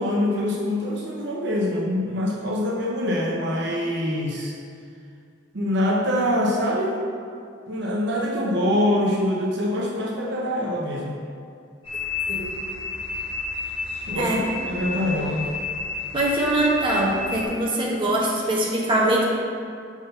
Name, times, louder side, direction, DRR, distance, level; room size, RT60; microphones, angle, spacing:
voice 1, 0.0-4.5 5.5-7.0 7.7-11.1 14.1-14.4 14.7-15.4, left 1 dB, 60° right, -3 dB, 0.7 m, -24 dB
sound 1, 11.8-17.5, left 3 dB, 25° left, 1.1 m, -31 dB
voice 2, 14.2-14.5 16.1-19.2, right 1 dB, 25° right, -4 dB, 0.9 m, -22 dB
5.4 x 3.6 x 5.5 m, 2.4 s
head